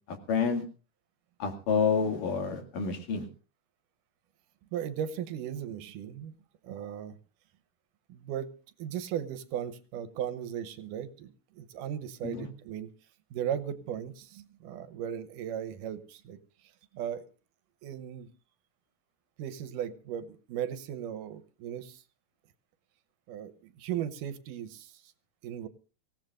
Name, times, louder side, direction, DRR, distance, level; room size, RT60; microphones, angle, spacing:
voice 1, 0.3-0.6 1.4-3.3 12.2-12.5, left 5 dB, 85° left, 4 dB, 3.9 m, -28 dB
voice 2, 4.7-6.3 6.6-7.2 8.1-8.5 8.8-12.9 13.3-16.4 16.9-17.3 17.8-18.3 19.4-22.0 23.3-24.9 25.4-25.7, right 9 dB, 85° right, 13 dB, 2.5 m, -37 dB
25.0 x 16.5 x 2.5 m, 0.35 s
omnidirectional pair, 3.7 m